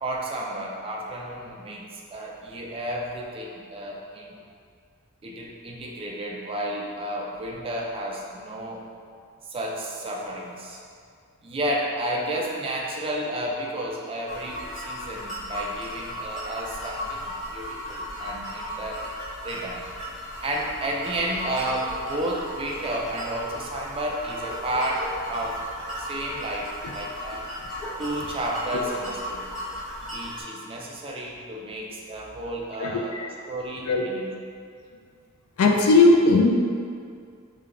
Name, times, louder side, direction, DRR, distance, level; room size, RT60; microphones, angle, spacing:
voice 1, 0.0-4.4 5.2-8.8 9.5-10.8 11.4-19.0 19.4-19.8 20.4-25.6 26.0-27.5 28.0-29.5 30.1-33.2 33.5-34.3, right 1 dB, 25° right, -2 dB, 0.3 m, -32 dB
sound 1, 14.3-30.4, equal, ahead, 0.9 m, -35 dB
voice 2, 32.8-33.3 33.9-34.0 35.6-36.5, left 3 dB, 80° left, 2 dB, 0.4 m, -18 dB
3.3 x 2.2 x 3.6 m, 2.3 s
head